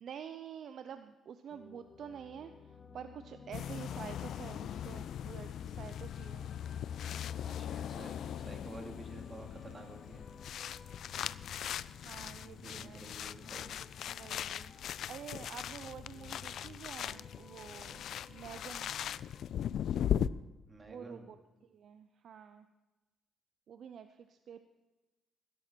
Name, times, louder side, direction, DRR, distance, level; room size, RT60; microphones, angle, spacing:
voice 1, 0.0-6.5 12.0-13.0 14.1-14.7 15.1-18.9 20.8-22.7 23.7-24.6, right 8 dB, 65° right, 9 dB, 0.6 m, -48 dB
sound 1, 1.5-20.4, left 4 dB, 40° left, 1.2 m, -56 dB
sound 2, 3.5-20.3, left 10 dB, 70° left, 0.3 m, -39 dB
voice 2, 7.4-10.3 12.6-13.9 20.7-21.3, right 2 dB, 30° right, 3 dB, 2.5 m, -50 dB
17.0 x 11.0 x 4.5 m, 1.1 s
cardioid pair, 90°, 0 cm